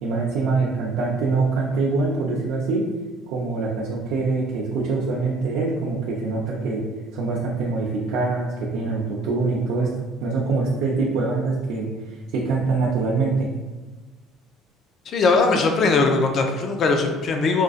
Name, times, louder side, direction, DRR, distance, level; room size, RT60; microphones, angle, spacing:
voice 1, 0.0-2.8 3.3-6.8 7.1-9.9 10.2-13.5, right 3 dB, 70° right, -5 dB, 0.5 m, -24 dB
voice 2, 15.1-17.6, left 3 dB, 35° left, 4 dB, 0.4 m, -20 dB
5.0 x 2.5 x 2.4 m, 1.2 s
cardioid pair, 175°, 0 cm